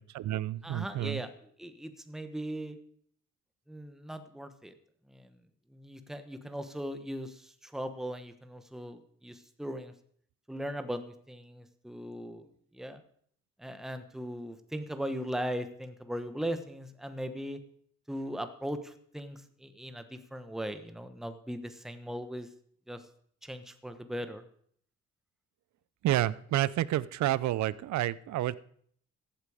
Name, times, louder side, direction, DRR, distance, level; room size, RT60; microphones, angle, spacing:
voice 1, 0.0-1.2 26.0-28.6, right 14 dB, 75° right, 20 dB, 0.6 m, -29 dB
voice 2, 0.6-2.8 3.7-4.7 5.1-5.3 5.7-9.9 10.5-12.5 12.7-13.0 13.6-17.6 18.1-22.5 22.9-23.0 23.4-24.4, equal, ahead, 9 dB, 1.2 m, -39 dB
14.5 x 8.6 x 5.0 m, 0.62 s
cardioid pair, 75°, 29 cm